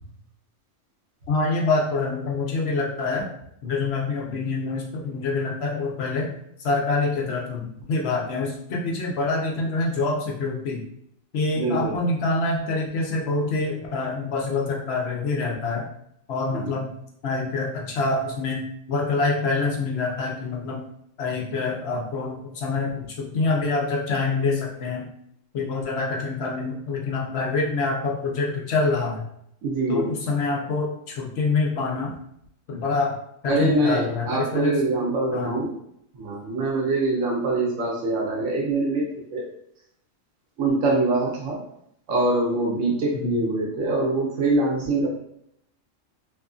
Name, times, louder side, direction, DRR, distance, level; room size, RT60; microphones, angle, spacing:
voice 1, 1.3-3.3 3.6-6.3 6.6-10.8 11.3-15.9 16.3-16.9 17.2-18.6 18.9-20.8 21.2-25.0 25.5-29.2 29.9-32.1 32.7-33.2 33.4-34.8 35.3-35.5 43.1-43.4, left 3 dB, 65° left, -2 dB, 0.7 m, -26 dB
voice 2, 11.5-11.9 16.5-16.7 29.6-30.1 33.5-35.8 36.1-39.4 40.6-41.6 42.1-45.1, right 2 dB, 90° right, -2 dB, 1.1 m, -24 dB
2.8 x 2.4 x 2.3 m, 0.75 s
omnidirectional pair, 1.3 m